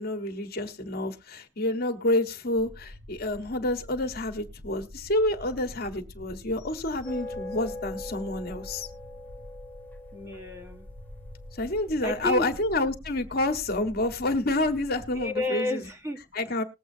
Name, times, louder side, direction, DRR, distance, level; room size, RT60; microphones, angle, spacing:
voice 1, 0.0-8.9 11.5-15.9 16.3-16.6, left 1 dB, 50° left, 6 dB, 1.3 m, -28 dB
sound 1, 2.5-15.3, left 1 dB, 75° right, 3.1 m, -46 dB
sound 2, 7.0-12.5, left 1 dB, 10° left, 1.3 m, -42 dB
voice 2, 10.1-10.9 12.0-12.5 15.1-16.2, left 2 dB, 15° right, 5 dB, 1.1 m, -31 dB
20.0 x 7.8 x 2.7 m, 0.27 s
head